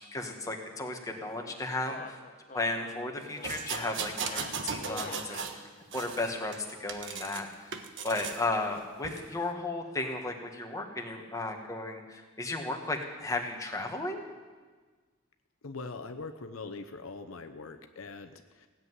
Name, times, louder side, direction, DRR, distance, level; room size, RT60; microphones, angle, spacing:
voice 1, 0.0-2.2 2.5-5.6 5.9-6.5 6.8-7.5 8.0-14.2, left 2 dB, 15° left, 2 dB, 1.6 m, -34 dB
sound 1, 1.4-5.5, left 3 dB, 35° left, 1.0 m, -45 dB
sound 2, 3.4-5.6 5.9-7.4 7.7-8.4 9.0-9.2, right 6 dB, 60° right, 1.2 m, -37 dB
voice 2, 15.6-18.7, left 3 dB, 70° left, 7 dB, 0.8 m, -42 dB
16.5 x 7.7 x 9.7 m, 1.4 s
head